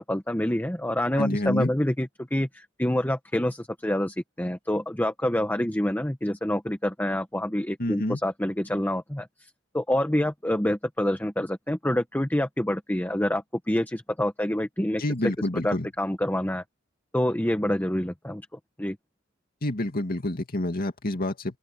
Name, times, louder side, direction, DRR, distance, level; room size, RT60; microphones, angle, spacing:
voice 1, 0.0-9.3 9.7-15.0 15.6-16.6 17.1-18.4 18.8-19.0, left 1 dB, 10° left, 1.2 m, -27 dB
voice 2, 1.2-1.7 7.8-8.2 15.0-15.9 19.6-21.6, left 1 dB, 45° left, 2.3 m, -28 dB
open air
head